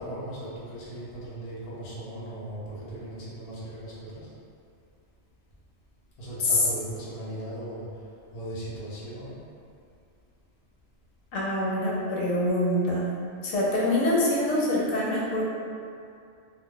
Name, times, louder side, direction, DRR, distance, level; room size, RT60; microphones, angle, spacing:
voice 1, 0.0-4.3 6.2-9.5, right 1 dB, 40° left, -9 dB, 0.7 m, -38 dB
voice 2, 11.3-13.1 13.4-15.5, left 1 dB, 80° left, -6 dB, 1.0 m, -25 dB
2.4 x 2.1 x 3.6 m, 2.5 s
omnidirectional pair, 1.4 m